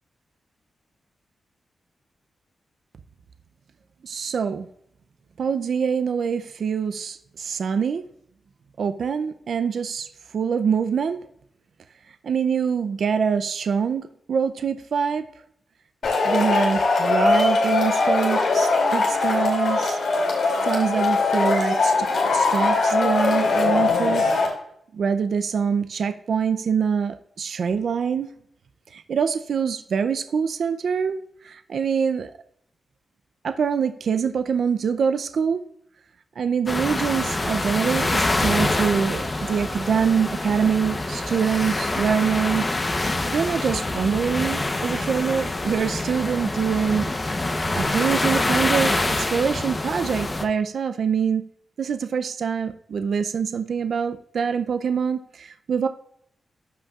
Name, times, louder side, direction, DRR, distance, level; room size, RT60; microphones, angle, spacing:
voice 1, 4.0-4.7 5.4-8.0 8.8-10.1 10.3-11.2 12.2-15.2 16.2-20.0 20.6-22.1 22.3-24.3 24.9-28.3 28.9-31.2 31.4-32.3 33.4-35.6 36.4-42.7 43.0-47.1 47.7-51.4 51.8-55.9, right 6 dB, 65° right, 9 dB, 0.5 m, -24 dB
Male speech man speaking / Shout / Clapping, 16.0-24.5, left 3 dB, 70° left, 2.6 m, -21 dB
sound 1, 36.7-50.4, left 2 dB, 25° left, 0.8 m, -25 dB
14.0 x 5.4 x 2.4 m, 0.69 s
wide cardioid pair, 120°, 0 cm